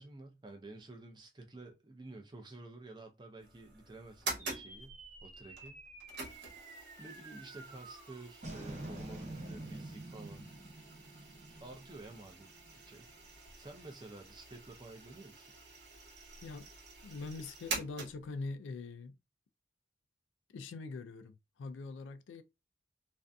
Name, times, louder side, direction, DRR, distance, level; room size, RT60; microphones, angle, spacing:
voice 1, 0.0-5.8 7.0-10.5 11.6-13.1 13.6-15.5, right 2 dB, 25° right, 0.4 m, -51 dB
sound 1, 3.4-18.5, right 3 dB, 65° right, 1.0 m, -47 dB
sound 2, 4.4-13.0, right 2 dB, 40° right, 0.8 m, -48 dB
voice 2, 17.0-19.2 20.5-22.4, left 3 dB, 90° left, 0.3 m, -43 dB
2.5 x 2.4 x 2.2 m
head